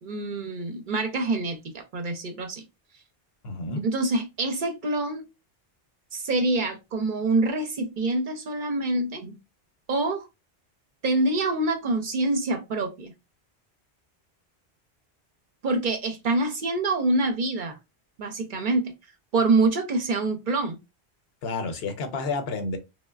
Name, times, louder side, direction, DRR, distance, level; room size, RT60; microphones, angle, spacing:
voice 1, 0.0-2.6 3.8-5.3 6.1-9.4 9.9-10.3 11.0-13.1 15.6-17.8 18.2-18.9 19.3-20.8, right 2 dB, 60° right, 0.6 m, -26 dB
voice 2, 3.4-3.9 21.4-22.8, left 3 dB, 75° left, 0.9 m, -30 dB
3.1 x 2.1 x 2.3 m
omnidirectional pair, 1.1 m